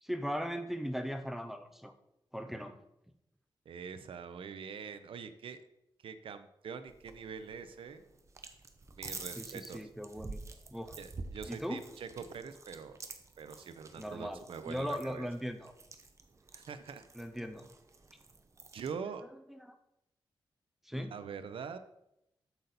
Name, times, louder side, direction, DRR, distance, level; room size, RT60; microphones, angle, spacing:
voice 1, 0.0-1.9 2.3-2.8 9.4-10.4 10.7-11.0 11.5-11.8 14.0-15.7 17.1-17.7 19.5-19.6 20.8-21.2, equal, 5° right, 8 dB, 0.6 m, -38 dB
voice 2, 3.7-5.6 6.0-8.0 9.0-9.8 11.0-13.0 13.4-15.3 16.5-17.1 18.7-19.2 20.9-21.8, right 6 dB, 85° right, 10 dB, 0.6 m, -44 dB
sound 1, 6.9-18.9, right 3 dB, 35° right, 0.8 m, -49 dB
8.2 x 6.7 x 4.1 m, 0.82 s
wide cardioid pair, 135°, 9 cm